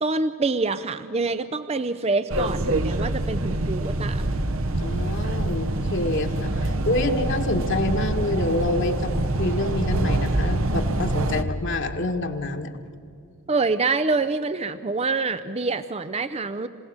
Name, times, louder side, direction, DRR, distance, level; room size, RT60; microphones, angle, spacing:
voice 1, 0.0-4.3 13.5-16.7, right 3 dB, 30° right, 12 dB, 0.6 m, -26 dB
sound 1, 2.3-11.4, right 1 dB, 75° right, 1.2 m, -25 dB
voice 2, 4.8-12.7, left 2 dB, 60° left, 3 dB, 1.6 m, -27 dB
27.0 x 17.5 x 7.3 m, 2.5 s
head